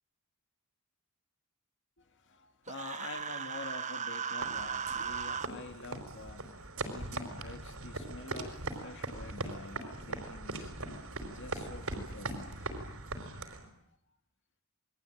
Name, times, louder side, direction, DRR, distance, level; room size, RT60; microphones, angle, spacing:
voice 1, 2.0-6.6 6.9-13.0, left 3 dB, 55° left, 6 dB, 2.2 m, -47 dB
Human voice, 2.7-5.5, right 6 dB, 35° right, 1.2 m, -37 dB
sound 1, 4.4-13.7, right 2 dB, 65° right, 4.8 m, -40 dB
28.5 x 22.5 x 9.2 m, 0.72 s
head